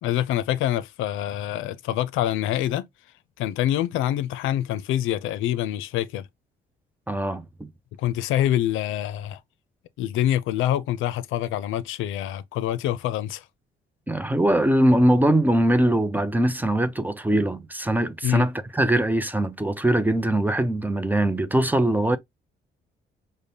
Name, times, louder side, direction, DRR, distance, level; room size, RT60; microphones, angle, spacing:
voice 1, 0.0-2.9 3.4-6.3 8.0-9.4 10.0-13.4 18.2-18.5, left 12 dB, 90° left, 0.5 m, -25 dB
voice 2, 7.1-7.7 14.1-22.2, right 1 dB, 10° right, 0.5 m, -22 dB
5.0 x 2.1 x 2.6 m
cardioid pair, 90°, 20 cm